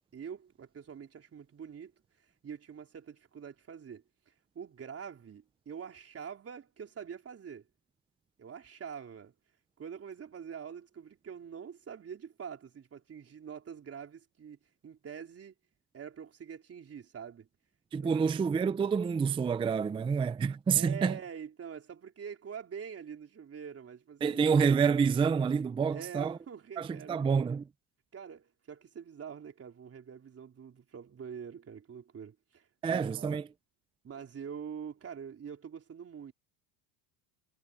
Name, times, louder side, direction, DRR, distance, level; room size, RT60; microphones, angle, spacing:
voice 1, 0.1-7.7 8.4-9.3 9.8-15.5 15.9-17.5 18.0-18.4 20.7-24.5 25.9-27.3 28.1-33.4 34.0-36.3, right 7 dB, 30° right, 4.0 m, -45 dB
voice 2, 17.9-21.2 24.2-26.4 26.8-27.7 32.8-33.5, right 6 dB, 10° right, 0.4 m, -28 dB
supercardioid pair, 120°, 50 cm